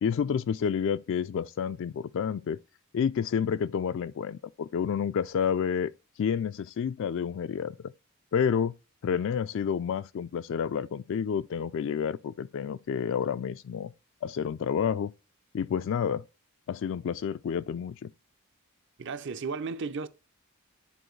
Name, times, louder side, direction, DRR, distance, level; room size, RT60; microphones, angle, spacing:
voice 1, 0.0-2.6 2.9-5.9 6.2-7.8 8.3-8.7 9.0-13.9 14.2-15.1 15.5-16.2 16.7-18.1, left 7 dB, 60° left, 0.3 m, -29 dB
voice 2, 19.0-20.1, right 4 dB, 55° right, 0.6 m, -34 dB
10.0 x 4.3 x 3.2 m
head